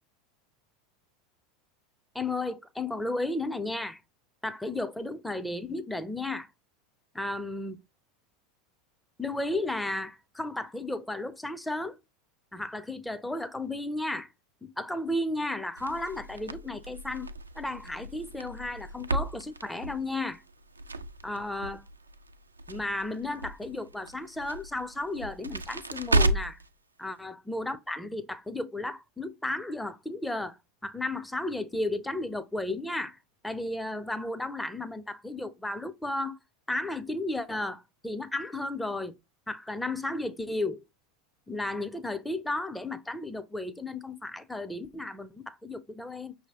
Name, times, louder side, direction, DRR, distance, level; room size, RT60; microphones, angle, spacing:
voice 1, 2.1-4.0 4.4-6.5 7.1-7.8 9.2-12.0 12.5-14.3 14.6-17.3 17.6-20.4 21.2-21.9 22.7-26.6 27.0-30.6 30.8-33.2 33.4-36.4 36.7-39.1 39.5-40.8 41.5-46.4, left 2 dB, 5° left, 0.5 m, -34 dB
Crackle, 15.8-26.7, right 2 dB, 85° right, 0.3 m, -33 dB
5.9 x 2.8 x 2.9 m
figure-of-eight pair, 80°, 0 cm